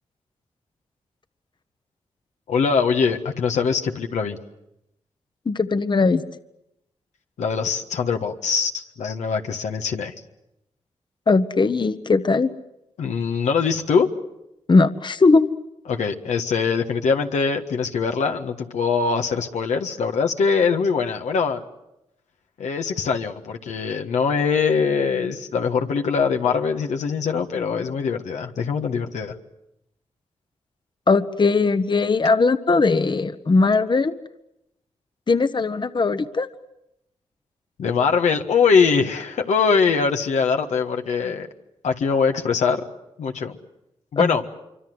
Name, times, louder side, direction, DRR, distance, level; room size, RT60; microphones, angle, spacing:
voice 1, 2.5-4.4 7.4-10.1 13.0-14.1 15.9-21.6 22.6-29.4 37.8-41.5 41.8-42.8 43.2-43.6 44.1-44.4, left 5 dB, 90° left, 4 dB, 1.6 m, -22 dB
voice 2, 5.5-6.2 11.3-12.5 14.7-15.5 31.1-34.1 35.3-36.5 44.2-44.3, left 3 dB, 40° left, 11 dB, 1.1 m, -19 dB
26.0 x 24.5 x 7.9 m, 0.85 s
cardioid pair, 55°, 12 cm